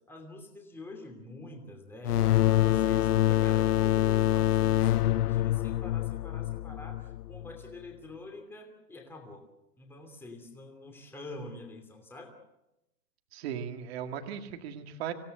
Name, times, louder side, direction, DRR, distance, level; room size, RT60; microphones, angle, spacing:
voice 1, 0.1-2.4 2.7-9.5 9.8-12.3, left 2 dB, 5° left, 2 dB, 2.7 m, -46 dB
sound 1, 2.0-7.5, left 13 dB, 75° left, 0.7 m, -25 dB
voice 2, 13.3-15.1, right 8 dB, 40° right, 5 dB, 2.1 m, -37 dB
26.0 x 17.0 x 7.8 m, 0.88 s
hypercardioid pair, 165°, 47 cm